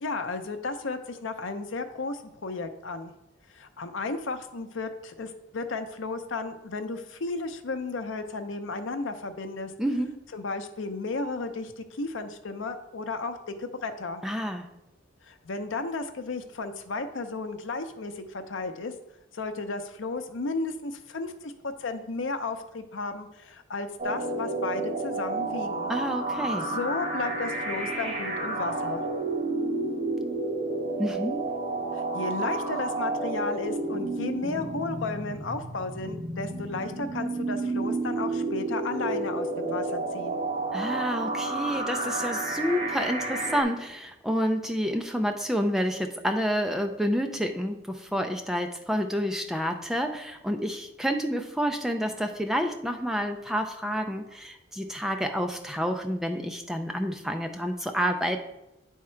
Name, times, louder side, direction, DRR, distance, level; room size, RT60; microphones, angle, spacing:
voice 1, 0.0-3.1 3.5-9.7 10.3-14.2 15.2-18.9 19.3-25.9 26.6-29.0 31.9-40.4, left 3 dB, 80° left, 8 dB, 0.6 m, -34 dB
voice 2, 9.8-10.1 14.2-14.7 25.9-26.7 31.0-31.4 40.7-58.4, equal, ahead, 4 dB, 0.4 m, -29 dB
sound 1, 24.0-43.6, right 2 dB, 35° right, 1.4 m, -31 dB
9.4 x 3.6 x 4.4 m, 0.92 s
head